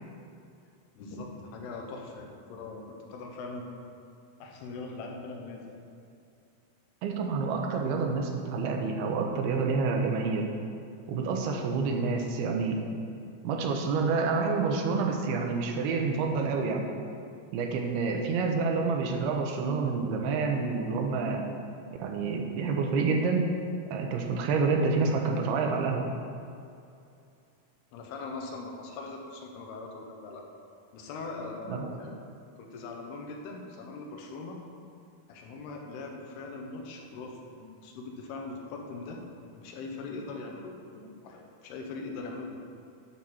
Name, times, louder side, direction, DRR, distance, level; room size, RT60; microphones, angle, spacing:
voice 1, 1.0-3.8 4.4-5.8 13.1-13.3 27.9-30.5 30.9-32.2 32.6-34.6 35.3-39.2 39.5-42.6, left 3 dB, 90° left, 1 dB, 3.0 m, -41 dB
voice 2, 7.0-10.5 11.1-12.8 13.4-16.8 17.5-21.4 22.0-23.5 23.9-26.1 31.7-31.9, right 4 dB, 85° right, 2 dB, 2.8 m, -28 dB
11.0 x 6.3 x 4.2 m, 2.5 s
omnidirectional pair, 4.5 m